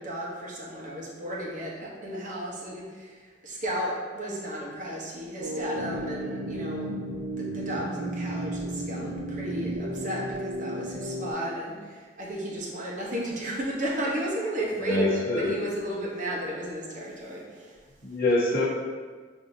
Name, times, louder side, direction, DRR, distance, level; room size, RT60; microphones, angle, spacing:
voice 1, 0.0-3.2 3.4-17.8, right 1 dB, 40° right, -3 dB, 0.8 m, -34 dB
sound 1, 5.4-11.3, right 1 dB, 65° right, 0.5 m, -33 dB
voice 2, 14.8-15.6 18.0-18.7, left 2 dB, 50° left, -7 dB, 1.0 m, -25 dB
6.7 x 2.6 x 2.6 m, 1.5 s
head